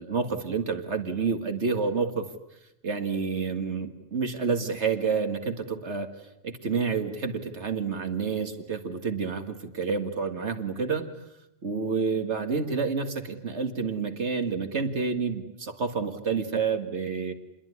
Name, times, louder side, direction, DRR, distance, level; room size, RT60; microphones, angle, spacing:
voice 1, 0.0-2.3 2.8-6.1 6.4-11.1 11.6-17.3, right 5 dB, 75° right, 8 dB, 2.2 m, -29 dB
28.5 x 21.5 x 9.7 m, 0.86 s
omnidirectional pair, 1.2 m